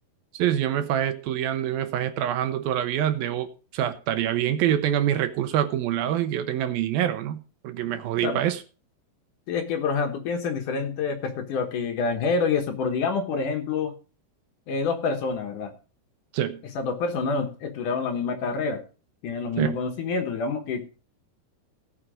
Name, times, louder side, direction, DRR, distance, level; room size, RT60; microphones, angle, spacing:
voice 1, 0.3-8.6 16.3-16.6 19.6-19.8, right 11 dB, 75° right, 10 dB, 2.6 m, -26 dB
voice 2, 9.5-13.9 14.7-15.7 16.8-18.8 19.2-20.9, left 4 dB, 65° left, 5 dB, 2.3 m, -27 dB
17.5 x 6.3 x 5.0 m, 0.36 s
omnidirectional pair, 4.6 m